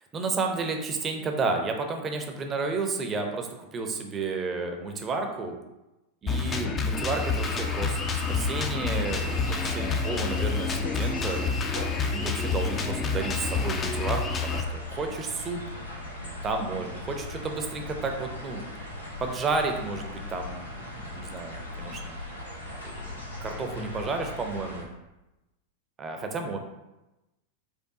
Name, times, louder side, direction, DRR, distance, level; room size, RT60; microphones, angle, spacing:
voice 1, 0.1-5.6 6.2-11.6 12.0-15.6 16.4-18.6 19.2-22.2 22.8-24.9 26.0-26.6, right 4 dB, 25° right, 4 dB, 0.6 m, -32 dB
Drum kit, 6.3-14.6, left 4 dB, 25° left, 0.4 m, -28 dB
sound 1, 7.4-24.8, left 2 dB, 85° left, 1.1 m, -39 dB
4.5 x 2.6 x 3.7 m, 0.99 s
figure-of-eight pair, 90°, 0 cm